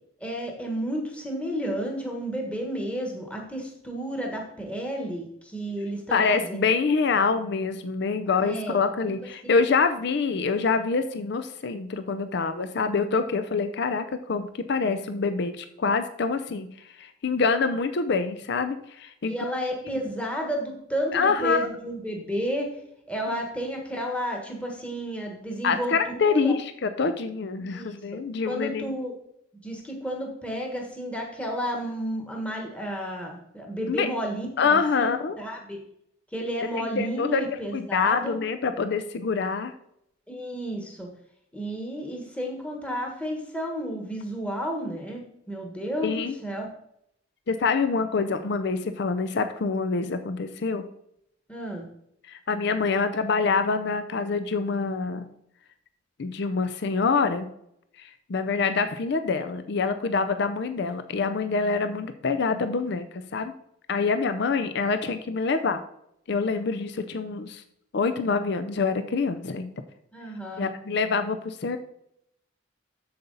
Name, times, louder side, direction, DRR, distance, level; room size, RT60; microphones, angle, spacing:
voice 1, 0.2-6.6 8.4-8.8 9.4-9.5 19.2-22.7 23.1-26.6 27.6-28.0 28.5-29.1 29.6-35.1 35.4-35.8 36.3-38.4 40.3-41.1 41.5-46.7 51.5-51.9 70.1-70.7, equal, 5° left, 0 dB, 1.2 m, -32 dB
voice 2, 6.1-16.7 17.0-19.4 19.9-20.0 21.1-21.7 23.3-23.4 25.6-28.9 33.9-34.1 34.6-35.4 36.7-37.4 37.7-39.7 46.0-46.4 47.5-50.9 52.3-55.3 56.2-57.5 58.0-63.5 63.9-65.8 66.3-67.6 67.9-69.7 70.6-71.8, left 4 dB, 60° left, 9 dB, 0.5 m, -26 dB
7.9 x 7.0 x 3.9 m, 0.75 s
head